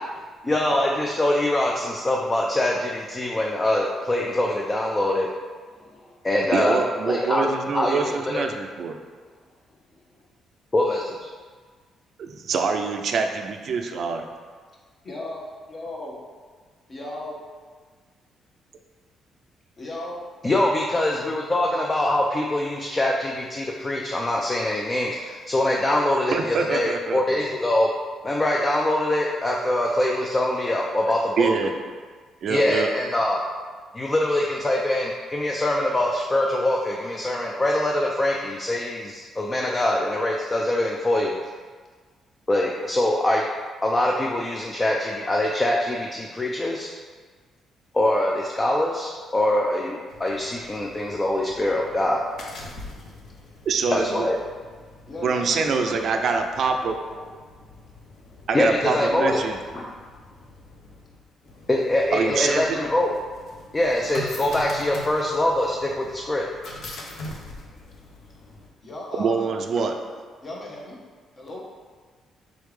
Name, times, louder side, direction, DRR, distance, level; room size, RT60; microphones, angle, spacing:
voice 1, 0.4-5.3 6.2-7.5 7.7-8.5 10.7-11.3 20.4-27.9 28.2-31.5 32.5-33.4 33.9-41.3 42.5-43.5 43.8-46.9 47.9-52.2 53.9-54.4 58.5-59.4 61.7-63.1 63.7-66.5, left 1 dB, 25° left, -1 dB, 0.4 m, -23 dB
voice 2, 5.7-6.1 9.0-10.3 15.0-15.4 15.7-16.2 16.9-17.4 19.8-20.3 52.6-52.7 55.1-56.3 57.1-57.2 58.3-59.9 62.7-63.0 68.8-69.5 70.4-71.0 71.4-71.7, left 1 dB, 40° left, -3 dB, 1.0 m, -38 dB
voice 3, 6.5-9.0 12.2-14.2 26.3-27.4 31.4-31.7 32.4-32.9 53.7-54.3 55.2-57.0 58.5-59.6 62.1-62.8 69.2-69.9, right 5 dB, 60° right, 5 dB, 0.4 m, -25 dB
sound 1, 50.1-68.7, left 2 dB, 65° left, 0.6 m, -43 dB
3.8 x 3.3 x 3.2 m, 1.5 s
cardioid pair, 90°, 0 cm